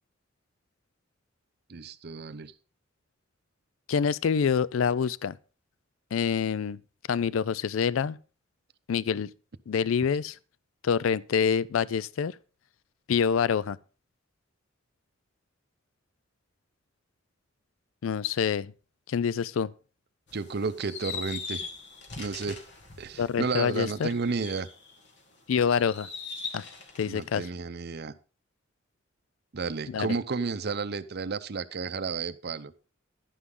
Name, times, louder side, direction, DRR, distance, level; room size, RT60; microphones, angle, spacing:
voice 1, 1.7-2.5 20.3-21.6 22.2-22.6 23.0-24.7 27.0-28.1 29.5-32.7, right 4 dB, 55° right, 0.6 m, -32 dB
voice 2, 3.9-5.4 6.1-6.8 7.1-8.2 8.9-9.3 9.7-10.3 10.8-12.4 13.1-13.8 18.0-18.7 19.1-19.7 23.2-24.1 25.5-26.1 26.5-26.6 27.0-27.4 29.9-30.1, left 6 dB, 80° left, 0.4 m, -26 dB
sound 1, 20.3-25.1 25.5-27.3, left 5 dB, 60° left, 2.0 m, -41 dB
11.0 x 9.9 x 3.7 m
head